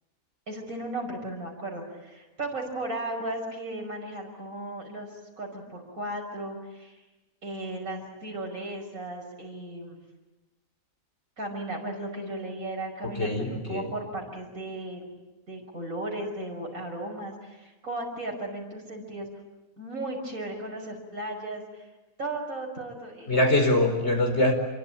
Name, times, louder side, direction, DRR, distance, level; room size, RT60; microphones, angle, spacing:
voice 1, 0.5-5.1 5.4-7.0 7.4-10.0 11.4-15.1 15.5-19.3 19.8-21.8 22.2-23.4, right 1 dB, 80° right, 1 dB, 6.1 m, -35 dB
voice 2, 13.0-13.8 23.3-24.5, left 1 dB, 50° left, 3 dB, 5.1 m, -23 dB
27.0 x 23.5 x 8.9 m, 1.1 s
omnidirectional pair, 1.4 m